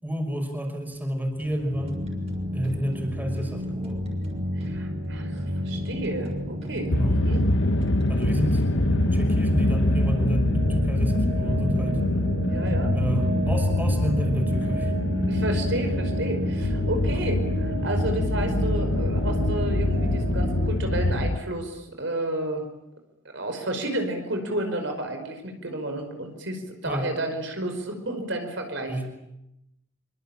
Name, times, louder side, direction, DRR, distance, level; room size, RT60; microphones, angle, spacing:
voice 1, 0.0-2.0 2.5-4.1 6.9-7.2 8.1-8.6 9.1-12.1 12.9-14.9 17.1-17.2 26.8-27.1 28.9-29.1, equal, 10° right, 4 dB, 5.9 m, -30 dB
sound 1, 1.3-9.1, equal, 35° right, 6.7 m, -46 dB
sound 2, 1.7-20.7, equal, 50° right, 7.0 m, -31 dB
voice 2, 4.6-7.4 12.5-12.9 15.3-22.6 23.3-29.1, right 1 dB, 65° right, 5 dB, 5.3 m, -31 dB
sound 3, 6.9-21.4, left 1 dB, 70° left, 1.4 m, -25 dB
25.5 x 25.0 x 8.8 m, 0.87 s
head